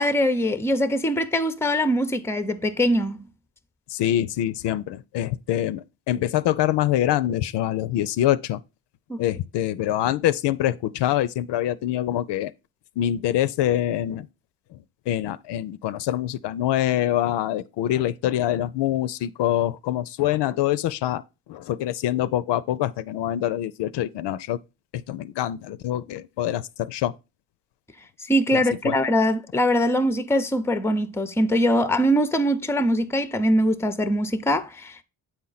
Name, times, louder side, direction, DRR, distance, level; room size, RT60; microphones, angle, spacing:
voice 1, 0.0-3.3 9.1-9.2 28.2-35.0, equal, 5° left, 0.5 m, -22 dB
voice 2, 3.9-8.6 9.2-12.5 13.0-14.3 14.7-21.2 21.5-24.6 24.9-27.2 28.5-28.9, left 12 dB, 70° left, 0.5 m, -25 dB
7.9 x 4.4 x 3.9 m
cardioid pair, 90°, 43 cm